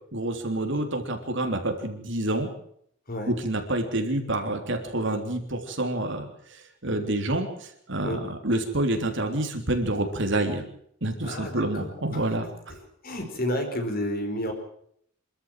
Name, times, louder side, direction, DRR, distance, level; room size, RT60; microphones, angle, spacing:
voice 1, 0.1-2.5 3.3-10.6 11.0-12.8, right 1 dB, 60° right, 5 dB, 3.5 m, -28 dB
voice 2, 11.2-12.2 12.7-12.8 13.0-14.5, equal, 45° left, 5 dB, 4.9 m, -31 dB
25.5 x 14.0 x 7.6 m, 0.67 s
head